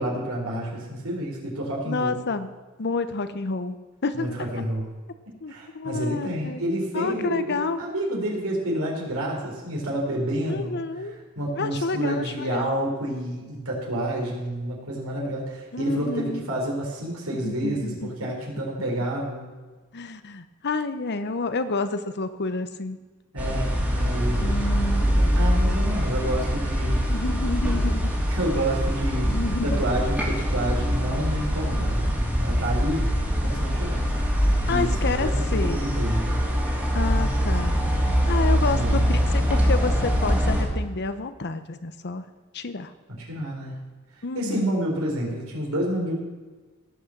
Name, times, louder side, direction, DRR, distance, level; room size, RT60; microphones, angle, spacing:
voice 1, 0.0-2.2 4.1-4.9 5.5-10.8 11.3-19.5 23.3-24.6 24.9-27.1 28.3-29.3 29.6-33.1 33.4-34.0 34.7-36.4 38.6-39.2 43.1-43.8 44.3-46.1, right 1 dB, 75° right, -2 dB, 4.3 m, -29 dB
voice 2, 1.9-4.3 5.4-6.7 6.9-7.8 10.5-11.2 11.5-12.7 15.7-16.5 17.4-18.3 19.9-23.0 24.4-25.1 27.1-28.1 29.2-29.8 34.7-35.8 36.9-37.8 38.2-42.3 42.5-42.9 44.2-44.8, left 3 dB, 50° left, 11 dB, 0.8 m, -29 dB
sound 1, 23.4-40.6, equal, 5° right, 3.3 m, -23 dB
17.5 x 6.3 x 7.3 m, 1.3 s
head